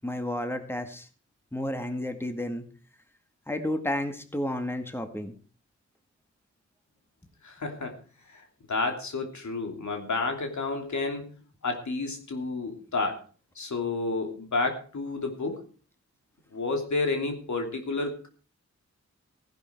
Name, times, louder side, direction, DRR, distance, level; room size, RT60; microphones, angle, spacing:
voice 1, 0.0-1.1 1.5-2.7 3.5-5.3, left 1 dB, 10° left, 7 dB, 1.9 m, -31 dB
voice 2, 7.4-7.9 8.3-11.3 11.6-13.2 13.5-15.6 16.5-18.3, left 3 dB, 75° left, 4 dB, 3.0 m, -30 dB
16.0 x 10.5 x 4.6 m, 0.38 s
cardioid pair, 60°, 29 cm